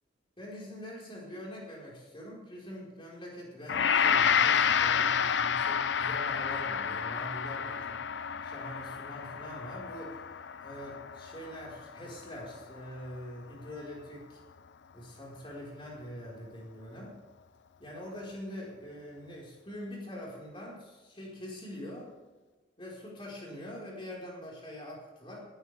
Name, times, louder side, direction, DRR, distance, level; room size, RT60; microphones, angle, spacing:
voice 1, 0.4-8.0 8.4-10.2 10.6-14.4 14.9-17.2 17.8-22.1 22.8-25.4, equal, 25° left, -4 dB, 5.0 m, -44 dB
Gong, 3.7-12.9, left 7 dB, 65° left, 0.5 m, -29 dB
18.5 x 14.0 x 3.6 m, 1.2 s
head